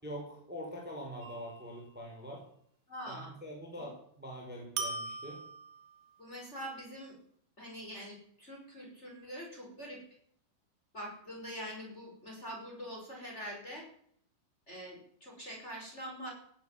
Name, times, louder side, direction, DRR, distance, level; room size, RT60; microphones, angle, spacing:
voice 1, 0.0-2.4 3.1-5.4, equal, ahead, -1 dB, 4.4 m, -44 dB
sound 1, 1.2-1.9 4.8-6.2, right 4 dB, 60° right, 3.7 m, -41 dB
voice 2, 2.9-3.3 3.8-3.9 6.2-7.2 7.6-10.0 10.9-13.9 14.7-16.3, equal, 15° left, -1 dB, 5.3 m, -44 dB
17.5 x 10.5 x 7.3 m, 0.63 s
omnidirectional pair, 5.5 m